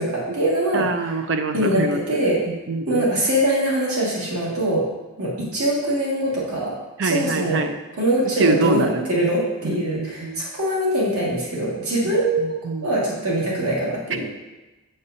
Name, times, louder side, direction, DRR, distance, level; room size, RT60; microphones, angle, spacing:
voice 1, 0.0-1.2 1.5-2.4 2.9-4.9 5.2-6.7 7.0-7.6 8.0-12.6 12.8-14.3, right 1 dB, 85° right, -6 dB, 1.9 m, -23 dB
voice 2, 0.7-2.0 2.5-3.1 7.0-7.8 8.4-9.1 9.6-10.4 12.0-12.9, right 3 dB, 55° right, 7 dB, 0.5 m, -25 dB
7.1 x 6.4 x 2.7 m, 1.1 s
head